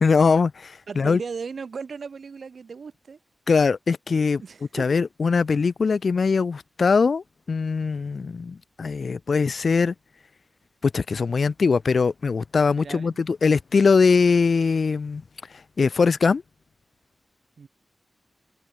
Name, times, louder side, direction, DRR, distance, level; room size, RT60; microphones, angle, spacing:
voice 1, 0.0-1.2 3.5-4.4 4.7-9.9 10.8-15.2 15.8-16.4, left 5 dB, 60° left, 0.3 m, -21 dB
voice 2, 0.9-3.2 4.4-4.9 12.8-13.2 17.6-17.7, right 5 dB, 65° right, 2.0 m, -36 dB
wide cardioid pair, 135°, 0 cm